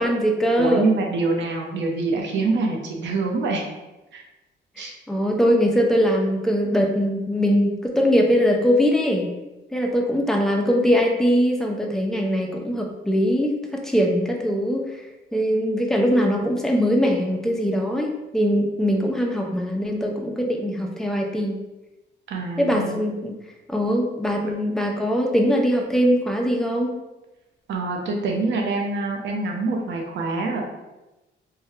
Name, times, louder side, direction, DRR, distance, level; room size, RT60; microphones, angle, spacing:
voice 1, 0.0-0.9 4.8-9.3 9.7-14.9 15.3-21.6 22.6-23.4 23.7-26.9, equal, ahead, 0 dB, 0.5 m, -21 dB
voice 2, 0.6-3.6 4.1-4.2 4.8-4.9 22.3-23.0 27.7-30.6, right 3 dB, 65° right, 0 dB, 0.7 m, -25 dB
3.2 x 2.3 x 2.7 m, 1.0 s
cardioid pair, 90°, 20 cm